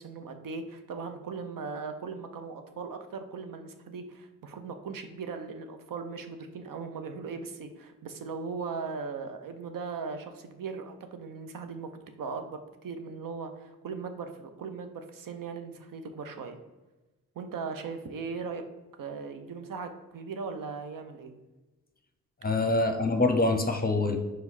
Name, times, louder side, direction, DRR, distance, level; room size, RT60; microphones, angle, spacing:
voice 1, 0.0-11.9 12.2-16.6 17.3-18.6 19.0-21.4, right 5 dB, 80° right, 7 dB, 0.8 m, -38 dB
voice 2, 22.4-24.2, left 2 dB, 30° left, 5 dB, 0.8 m, -25 dB
4.9 x 4.6 x 4.1 m, 1.1 s
cardioid pair, 65°, 33 cm